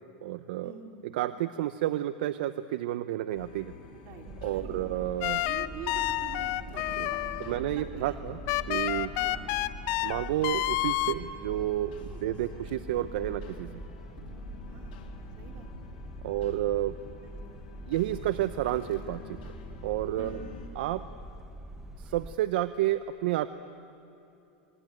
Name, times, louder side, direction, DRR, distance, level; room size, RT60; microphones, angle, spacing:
voice 1, 0.2-0.7 1.1-3.7 4.4-5.4 7.0-7.1 7.4-8.4 8.7-9.1 10.0-11.9 12.2-13.7 16.2-16.9 17.9-19.2 19.8-20.4 20.8-21.1 22.0-23.5, right 14 dB, 75° right, 12 dB, 0.8 m, -30 dB
sound 1, 3.3-20.7, left 6 dB, 75° left, 3.7 m, -49 dB
voice 2, 3.9-4.8 5.5-7.4 7.8-8.2 9.2-9.4 12.0-12.2 14.7-15.0 15.4-15.7 17.2-17.4 20.2-20.4, right 6 dB, 50° right, 2 dB, 4.4 m, -45 dB
sound 2, 4.2-22.4, right 1 dB, 5° right, 1.4 m, -44 dB
sound 3, 5.2-7.7 8.5-11.1, left 17 dB, 55° left, 0.9 m, -29 dB
27.0 x 22.0 x 9.2 m, 2.8 s
supercardioid pair, 125°, 5 cm